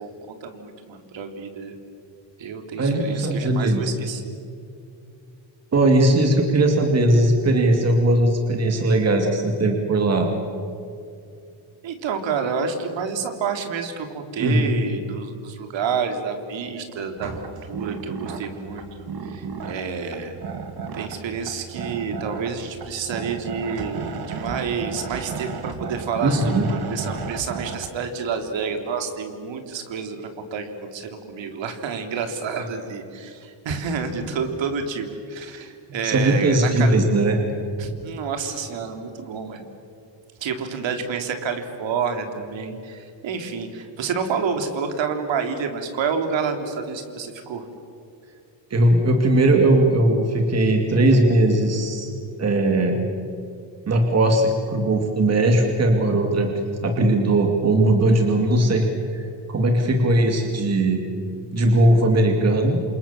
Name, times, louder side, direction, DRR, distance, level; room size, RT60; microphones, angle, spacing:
voice 1, 0.0-1.7 2.4-4.3 11.8-20.4 20.9-37.0 37.8-39.6 40.4-47.6, right 5 dB, 70° right, 6 dB, 3.4 m, -29 dB
voice 2, 2.8-3.9 5.7-10.3 14.4-14.7 26.2-26.7 36.0-37.4 48.7-52.1 52.4-53.0 53.9-56.5 56.8-58.9 59.1-61.0 61.5-62.8, right 1 dB, 35° right, 3 dB, 2.6 m, -19 dB
sound 1, 17.2-27.9, right 5 dB, 50° right, 2.6 m, -34 dB
29.0 x 27.5 x 7.3 m, 2.5 s
cardioid pair, 160°, 46 cm